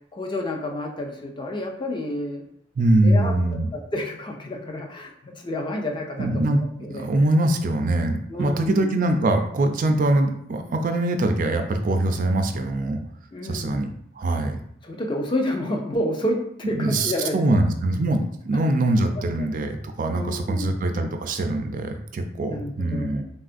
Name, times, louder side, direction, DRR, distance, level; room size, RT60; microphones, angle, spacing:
voice 1, 0.1-2.4 3.0-7.1 8.3-8.9 13.3-13.9 14.8-17.6 19.4-19.5 20.1-20.8 22.4-23.2, left 1 dB, 25° left, 1 dB, 0.4 m, -30 dB
voice 2, 2.8-3.7 6.2-6.6 6.9-13.0 13.5-13.9 14.2-14.6 16.6-23.2, right 1 dB, 45° right, 5 dB, 0.3 m, -23 dB
3.5 x 2.4 x 2.5 m, 0.70 s
head